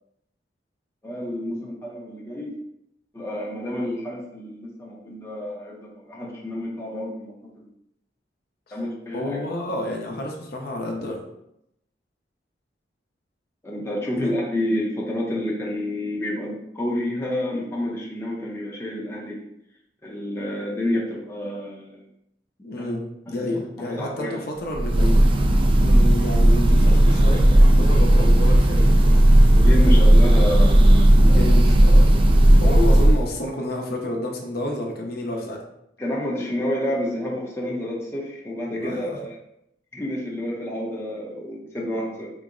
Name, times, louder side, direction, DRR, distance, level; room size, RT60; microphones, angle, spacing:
voice 1, 1.0-2.6 3.1-7.7 8.7-9.6 13.6-19.4 20.0-22.1 22.8-22.9 23.3-23.5 23.8-24.4 29.6-31.4 32.6-33.1 36.0-39.4 39.9-42.3, left 1 dB, 15° left, -3 dB, 0.6 m, -29 dB
voice 2, 9.1-11.2 14.2-14.3 22.6-25.2 25.8-29.3 31.2-32.2 32.6-35.6 38.7-39.2, left 1 dB, 55° left, 0 dB, 0.6 m, -30 dB
Breathing / Bird, 24.7-33.3, right 1 dB, 30° right, 0.3 m, -14 dB
3.8 x 2.1 x 3.6 m, 0.79 s
head